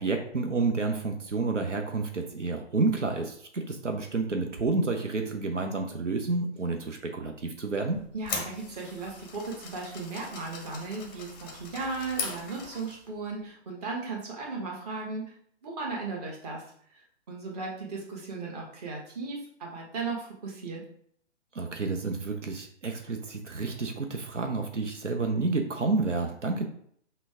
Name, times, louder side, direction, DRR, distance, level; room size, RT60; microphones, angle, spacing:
voice 1, 0.0-8.0 21.5-26.6, right 3 dB, 90° right, 4 dB, 0.7 m, -30 dB
sound 1, 7.9-13.1, left 4 dB, 20° left, 0.6 m, -39 dB
voice 2, 8.1-15.3 15.6-16.6 16.9-20.8, right 3 dB, 35° right, -2 dB, 1.4 m, -36 dB
5.8 x 2.2 x 3.5 m, 0.64 s
figure-of-eight pair, 135°, 35 cm